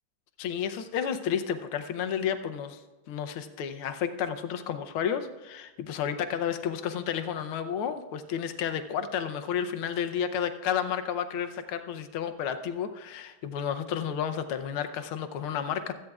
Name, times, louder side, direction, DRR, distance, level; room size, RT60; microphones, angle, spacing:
voice 1, 0.4-2.8 3.1-15.9, left 8 dB, 80° left, 8 dB, 1.6 m, -31 dB
16.5 x 13.0 x 2.4 m, 1.1 s
omnidirectional pair, 2.3 m